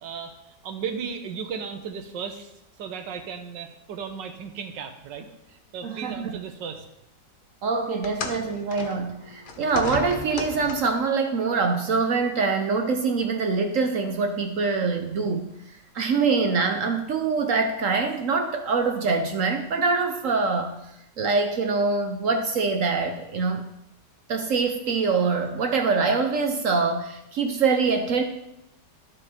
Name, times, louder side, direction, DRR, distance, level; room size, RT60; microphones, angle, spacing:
voice 1, 0.0-2.5 2.8-6.9, right 6 dB, 85° right, 7 dB, 1.6 m, -35 dB
voice 2, 5.8-6.3 7.6-15.5 15.9-20.8 21.2-23.6 24.3-28.2, right 4 dB, 60° right, 5 dB, 0.9 m, -24 dB
sound 1, 8.0-11.1 12.1-12.2 13.1-13.2, left 4 dB, 60° left, 0.5 m, -35 dB
12.5 x 5.4 x 4.2 m, 0.83 s
omnidirectional pair, 1.9 m